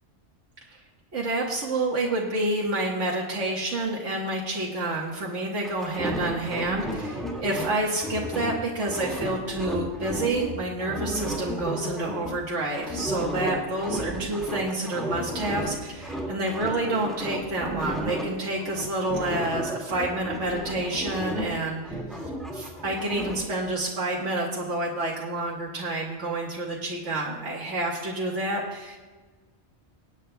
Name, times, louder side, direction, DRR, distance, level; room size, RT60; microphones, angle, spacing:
voice 1, 1.1-22.2 22.5-29.0, right 2 dB, 85° right, -3 dB, 1.7 m, -29 dB
sound 1, 5.6-10.5 10.8-15.7 16.0-18.2 18.6-21.6 21.8-23.4, equal, ahead, 2.0 m, -33 dB
24.0 x 9.2 x 2.2 m, 1.3 s
omnidirectional pair, 1.2 m